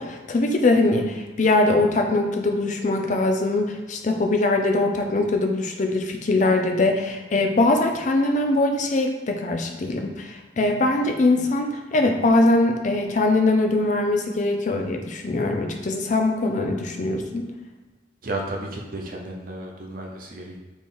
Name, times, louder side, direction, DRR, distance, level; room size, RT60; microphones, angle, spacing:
voice 1, 0.0-17.4, left 2 dB, 40° left, 4 dB, 0.4 m, -22 dB
voice 2, 18.2-20.6, right 2 dB, 50° right, 0 dB, 0.6 m, -33 dB
4.3 x 3.0 x 3.7 m, 1.2 s
head